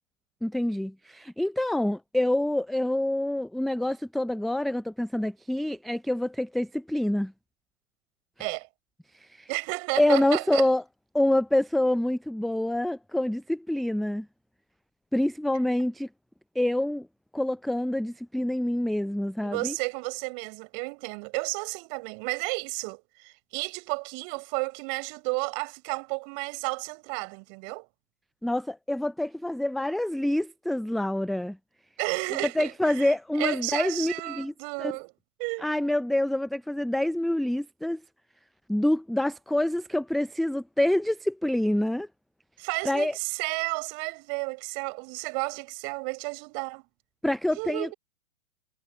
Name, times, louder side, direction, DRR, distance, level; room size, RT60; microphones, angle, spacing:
voice 1, 0.4-7.3 9.2-9.5 10.0-10.8 11.1-14.3 15.1-16.1 16.6-17.1 17.3-19.8 28.4-31.6 32.6-34.5 34.8-34.9 35.6-38.0 38.7-42.1 42.8-43.1 47.2-47.9, left 1 dB, ahead, 0.6 m, -26 dB
voice 2, 9.5-10.6 19.4-27.9 32.0-35.1 35.4-35.7 42.6-46.8 47.5-47.9, right 40 dB or more, 35° right, 7.4 m, -32 dB
figure-of-eight pair, 115°, 43 cm